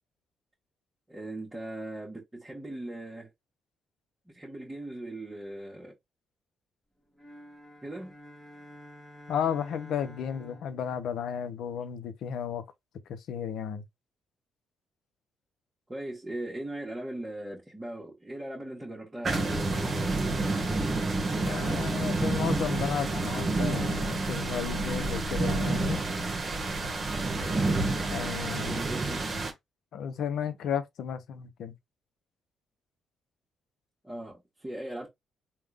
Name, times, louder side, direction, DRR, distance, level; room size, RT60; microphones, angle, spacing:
voice 1, 1.1-3.3 4.3-5.9 7.8-8.2 15.9-20.4 28.6-29.2 34.0-35.1, right 1 dB, 15° right, 1.5 m, -39 dB
sound 1, 7.1-11.8, equal, 15° left, 1.6 m, -50 dB
voice 2, 9.3-12.6 13.1-13.8 21.5-26.0 28.1-28.8 29.9-31.7, left 8 dB, 75° left, 0.7 m, -33 dB
sound 2, 19.2-29.5, right 2 dB, 35° right, 1.2 m, -29 dB
3.6 x 2.5 x 3.4 m
cardioid pair, 90°, 0 cm